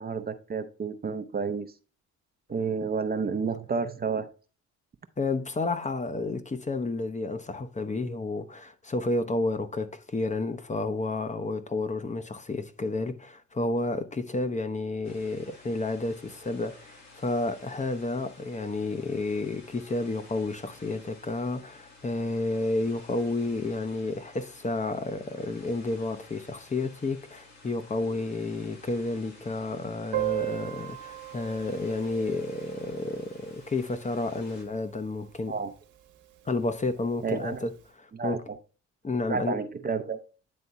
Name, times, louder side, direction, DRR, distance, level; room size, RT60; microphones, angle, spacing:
voice 1, 0.0-1.7 2.5-4.3 35.5-35.7 37.2-37.6 38.1-38.4 39.3-40.2, right 5 dB, 30° right, 0.6 m, -30 dB
voice 2, 5.2-35.6 36.5-38.4 39.0-39.6, left 2 dB, 25° left, 0.8 m, -31 dB
sound 1, 15.0-34.6, left 3 dB, 65° left, 2.3 m, -53 dB
Piano, 30.1-35.5 35.7-35.8 36.1-36.2 36.5-36.6 37.4-37.6, right 18 dB, 90° right, 1.1 m, -37 dB
9.6 x 3.5 x 4.1 m
cardioid pair, 90°, 30 cm